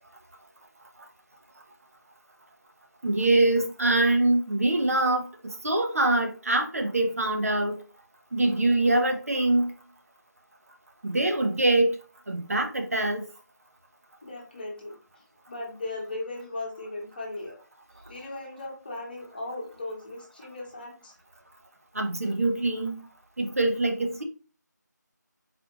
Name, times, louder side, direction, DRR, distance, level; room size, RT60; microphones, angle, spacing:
voice 1, 3.0-7.8 8.3-9.7 11.0-12.0 12.3-13.2 21.9-23.1 23.4-24.2, right 2 dB, 50° right, 0.7 m, -24 dB
voice 2, 14.2-14.9 15.5-17.6 18.1-21.1, left 2 dB, 30° left, 1.1 m, -37 dB
4.2 x 2.5 x 4.0 m
figure-of-eight pair, 165°, 10 cm